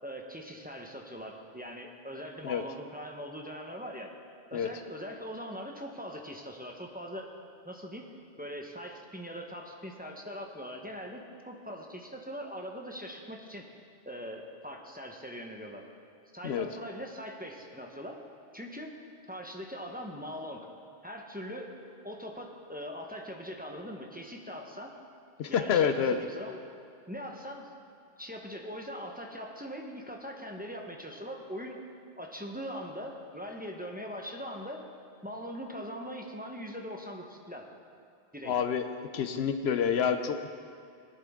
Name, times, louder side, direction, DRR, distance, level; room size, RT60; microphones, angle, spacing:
voice 1, 0.0-4.1 4.5-7.3 7.6-8.0 8.4-13.7 14.0-15.9 16.3-18.2 18.5-19.0 19.3-20.7 21.0-21.7 22.0-25.0 25.5-26.6 27.1-27.7 28.2-31.8 32.2-34.8 35.2-37.7 38.3-38.6, equal, 10° right, 1 dB, 0.9 m, -41 dB
voice 2, 25.4-26.2 38.5-38.9 39.1-40.5, left 7 dB, 85° left, 8 dB, 0.9 m, -28 dB
17.5 x 11.0 x 3.7 m, 2.4 s
omnidirectional pair, 1.0 m